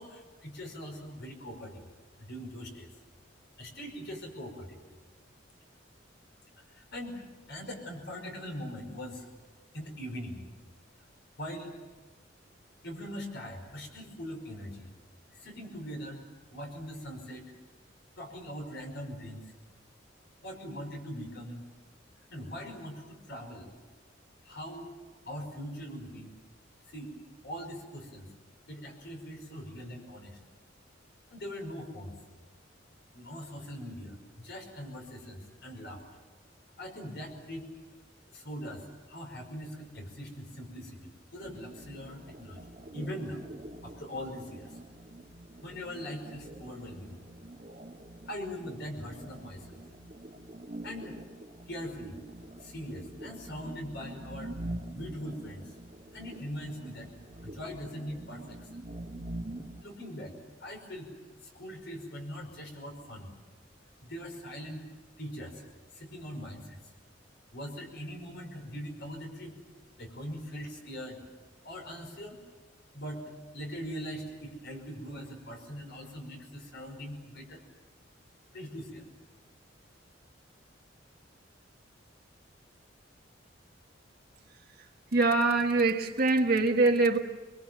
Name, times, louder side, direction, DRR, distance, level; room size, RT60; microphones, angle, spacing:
voice 1, 0.0-1.9 2.2-2.9 3.6-4.8 6.6-7.2 7.5-9.3 9.7-10.5 11.4-11.8 12.8-14.9 15.3-16.2 16.5-17.4 18.2-19.5 20.4-21.6 22.3-23.7 24.4-24.9 25.2-26.3 26.9-27.2 27.4-28.3 28.7-30.4 31.3-32.2 33.1-36.2 36.8-37.7 38.3-43.4 43.8-44.8 45.6-47.2 48.2-49.8 50.8-51.2 51.7-52.2 52.6-54.6 54.9-55.8 56.1-57.1 57.4-58.8 59.8-60.3 60.6-61.1 61.4-63.3 64.0-64.9 65.2-65.7 65.9-66.9 67.5-69.6 70.0-71.2 71.6-72.4 72.9-73.2 73.5-77.6 78.5-79.0, equal, 65° left, 5.5 m, -41 dB
sound 1, 41.4-59.8, right 1 dB, 35° right, 1.6 m, -45 dB
voice 2, 85.1-87.2, right 3 dB, 55° right, 1.5 m, -24 dB
23.5 x 23.0 x 7.6 m
head